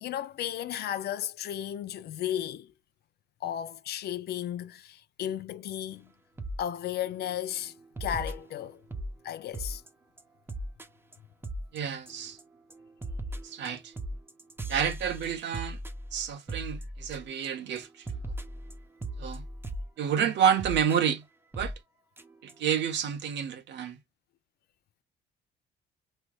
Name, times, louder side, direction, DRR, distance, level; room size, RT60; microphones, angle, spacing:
voice 1, 0.0-2.7 3.4-6.1 6.6-7.7 8.0-8.8 9.2-9.8, left 11 dB, 55° left, 0.5 m, -34 dB
sound 1, 6.4-6.6 7.0-7.3 8.0-9.1 9.5-9.9 10.2-10.3 10.5-10.9 11.1-11.2 11.4-11.8 12.1-12.4 12.7-17.5 17.8-17.9 18.1-19.9 20.6-21.0 21.5-21.8 22.2-22.3 22.5-22.6, right 1 dB, 10° right, 0.7 m, -37 dB
voice 2, 11.7-12.4 13.4-13.9 14.7-15.8 16.1-18.1 19.2-19.4 20.0-21.2 21.5-21.7 22.4-24.0, right 8 dB, 65° right, 1.0 m, -29 dB
3.3 x 2.9 x 2.2 m
cardioid pair, 140°, 20 cm